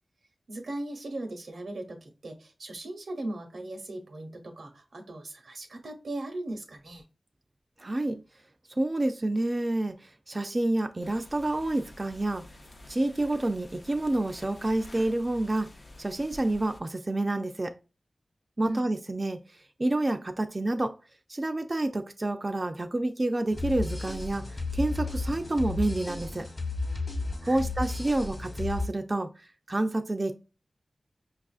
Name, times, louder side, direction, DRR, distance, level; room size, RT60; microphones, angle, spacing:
voice 1, 0.5-7.0 18.6-18.9 27.4-27.7, right 1 dB, 90° right, 0.8 m, -38 dB
voice 2, 7.8-8.2 8.7-12.4 12.9-15.7 16.0-17.7 18.6-19.4 19.8-21.0 21.3-26.5 27.5-29.3 29.7-30.3, right 2 dB, 35° right, 0.3 m, -28 dB
sound 1, 11.0-16.8, left 2 dB, 55° left, 0.6 m, -49 dB
sound 2, 23.5-28.9, left 3 dB, 30° left, 1.0 m, -33 dB
5.2 x 2.4 x 2.4 m
wide cardioid pair, 60°, 0 cm